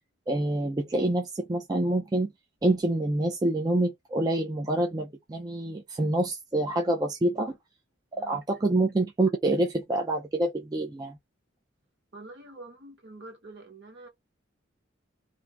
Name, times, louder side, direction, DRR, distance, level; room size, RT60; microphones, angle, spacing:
voice 1, 0.3-2.3 2.6-7.6 8.3-11.2, right 2 dB, 20° right, 0.3 m, -27 dB
voice 2, 12.1-14.1, right 2 dB, 60° right, 1.5 m, -46 dB
2.6 x 2.3 x 3.1 m
head